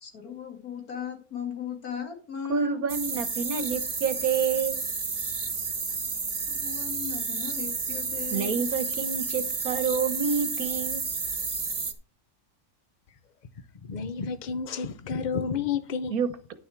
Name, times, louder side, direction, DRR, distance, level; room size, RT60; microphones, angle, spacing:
voice 1, 0.0-2.8 6.5-9.0, left 8 dB, 85° left, 2.7 m, -37 dB
voice 2, 2.5-4.9 8.3-11.0 16.1-16.5, right 6 dB, 75° right, 1.5 m, -28 dB
sound 1, 2.9-11.9, right 4 dB, 30° right, 0.9 m, -31 dB
voice 3, 13.8-16.1, left 6 dB, 40° left, 0.8 m, -30 dB
10.5 x 7.1 x 4.5 m
omnidirectional pair, 1.5 m